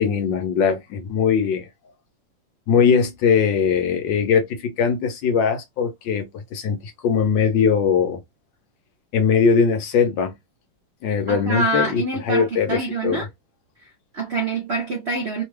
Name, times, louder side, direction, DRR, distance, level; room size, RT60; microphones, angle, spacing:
voice 1, 0.0-1.7 2.7-8.2 9.1-10.3 11.0-13.2, left 6 dB, 65° left, 1.3 m, -20 dB
voice 2, 11.3-13.3 13.8-15.4, right 2 dB, 70° right, 0.6 m, -26 dB
3.5 x 2.2 x 3.2 m
omnidirectional pair, 2.4 m